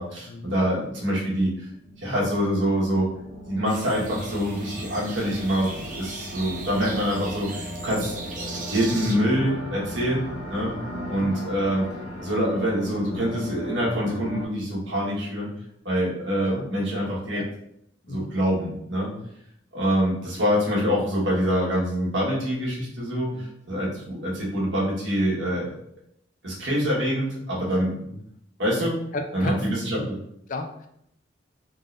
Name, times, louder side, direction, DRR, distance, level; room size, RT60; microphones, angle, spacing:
voice 1, 0.0-1.7 2.0-3.1 3.5-8.1 8.7-10.7 11.1-11.9 12.2-15.5 15.8-17.4 18.1-19.1 19.7-25.7 26.4-27.9 28.6-29.0 29.3-30.2, equal, 80° right, -5 dB, 1.4 m, -25 dB
sound 1, 1.7-14.5, equal, 70° left, 0.9 m, -37 dB
sound 2, 3.7-9.2, right 3 dB, 40° right, 0.6 m, -38 dB
voice 2, 29.1-29.6 30.0-30.1 30.5-30.9, left 2 dB, 45° left, 5 dB, 0.4 m, -34 dB
3.7 x 3.3 x 2.6 m, 0.74 s
head